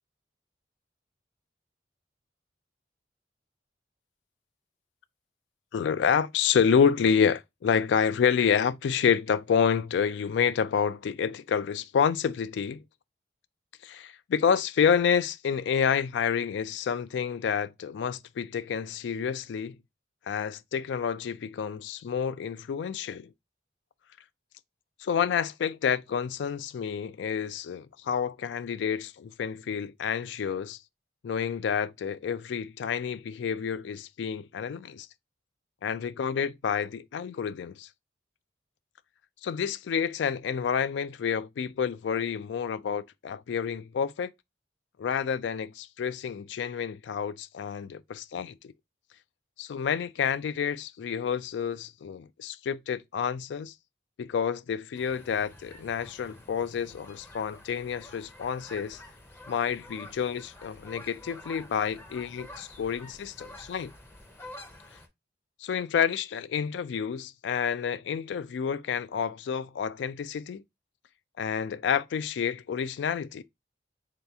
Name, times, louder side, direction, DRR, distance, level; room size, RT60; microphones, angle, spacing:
voice 1, 5.7-12.8 13.8-19.8 20.3-23.3 25.0-30.8 31.2-35.1 35.8-37.9 39.4-44.3 45.0-48.7 49.6-53.7 54.2-59.0 59.5-63.9 65.6-70.6 71.4-73.4, left 7 dB, 75° left, 0.3 m, -29 dB
sound 1, 55.0-65.1, left 1 dB, 10° left, 0.5 m, -49 dB
4.0 x 2.9 x 3.4 m
head